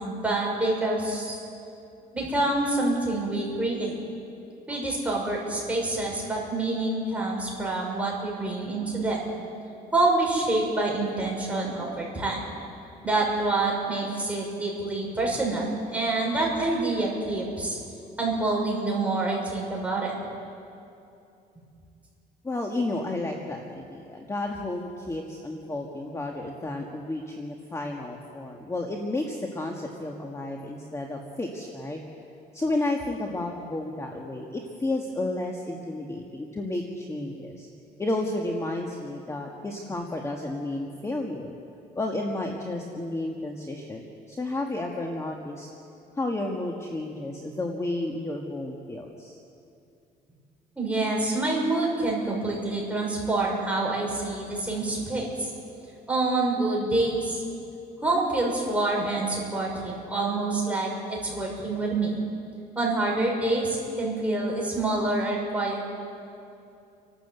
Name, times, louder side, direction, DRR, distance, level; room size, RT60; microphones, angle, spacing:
voice 1, 0.0-1.4 2.1-3.9 4.7-9.3 9.9-12.5 13.0-17.8 18.2-20.1 50.8-55.5 56.1-57.4 58.0-62.2 62.8-65.9, right 2 dB, 10° right, -3 dB, 6.3 m, -27 dB
voice 2, 22.4-32.0 32.5-37.7 38.0-41.5 41.9-45.7 46.2-49.4, left 2 dB, 15° left, 1 dB, 1.7 m, -32 dB
29.0 x 12.5 x 8.2 m, 2.6 s
cardioid pair, 110°, 17 cm